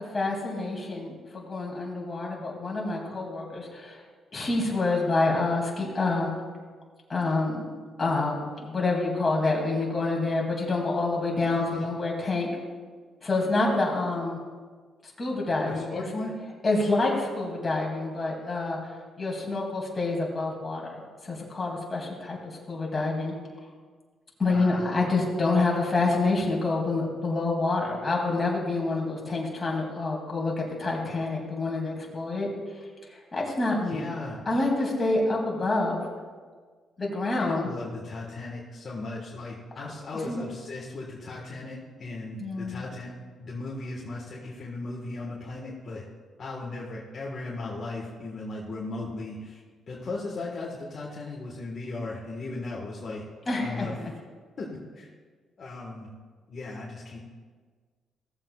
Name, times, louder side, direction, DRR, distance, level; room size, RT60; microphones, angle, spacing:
voice 1, 0.1-4.0 4.3-6.3 7.1-7.6 8.0-12.5 13.2-14.4 15.2-16.0 16.6-18.9 19.2-20.9 21.2-23.3 24.4-32.5 33.1-34.1 34.5-36.0 37.0-37.7 39.8-39.9 40.3-40.5 42.4-42.8 53.5-54.1, left 3 dB, 25° left, -2 dB, 2.6 m, -27 dB
voice 2, 11.5-11.9 15.6-16.3 24.5-24.9 33.9-34.4 37.4-43.1 43.4-46.0 46.4-53.2 53.6-53.9 54.6-54.7 54.9-55.1 55.6-56.1 56.5-57.2, left 2 dB, 45° left, -4 dB, 1.6 m, -37 dB
16.5 x 7.7 x 2.4 m, 1.5 s
cardioid pair, 90°, 0 cm